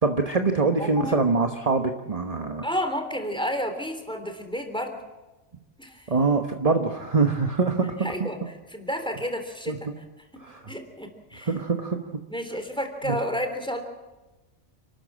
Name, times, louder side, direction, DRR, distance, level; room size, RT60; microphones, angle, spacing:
voice 1, 0.0-2.7 6.1-8.1 9.7-9.9 10.4-10.6 11.4-12.0 13.0-13.2, right 4 dB, 30° right, 5 dB, 1.2 m, -24 dB
voice 2, 0.8-1.2 2.6-5.0 5.8-6.1 8.0-8.4 8.7-9.7 10.3-11.5 12.3-13.8, equal, 5° left, 5 dB, 3.4 m, -31 dB
29.0 x 13.0 x 7.6 m, 1.1 s
omnidirectional pair, 1.2 m